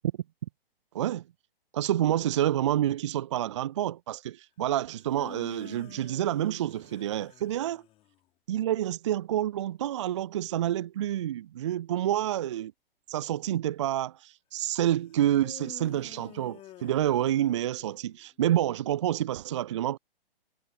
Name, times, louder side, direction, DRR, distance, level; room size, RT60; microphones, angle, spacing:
voice 1, 1.7-7.8 8.5-12.7 13.1-20.0, right 12 dB, 30° right, 0.5 m, -28 dB
sound 1, 4.9-8.2 15.3-18.3, left 15 dB, 20° left, 5.6 m, -49 dB
figure-of-eight pair, 125°, 29 cm